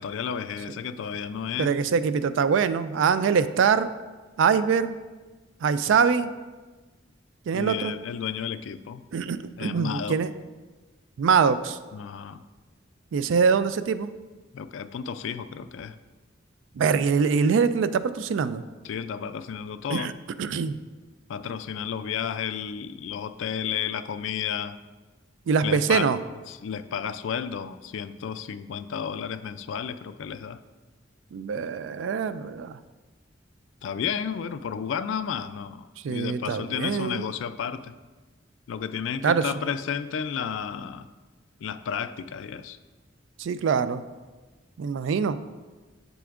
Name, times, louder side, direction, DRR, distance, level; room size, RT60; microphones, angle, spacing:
voice 1, 0.0-1.8 7.5-9.0 9.6-10.2 11.9-12.4 14.5-15.9 18.8-20.1 21.3-24.8 25.6-26.1 26.5-30.6 33.8-38.0 38.7-41.1 41.6-42.8, left 7 dB, 80° left, 11 dB, 0.3 m, -32 dB
voice 2, 1.6-3.9 4.4-4.9 5.6-6.3 7.5-7.9 9.1-10.3 11.2-11.8 13.1-14.1 16.8-18.6 19.9-20.1 20.4-20.8 25.5-26.2 31.3-32.8 36.0-37.3 39.2-39.5 43.4-44.0 44.8-45.4, right 6 dB, 75° right, 13 dB, 0.3 m, -23 dB
7.8 x 6.9 x 2.4 m, 1.3 s
head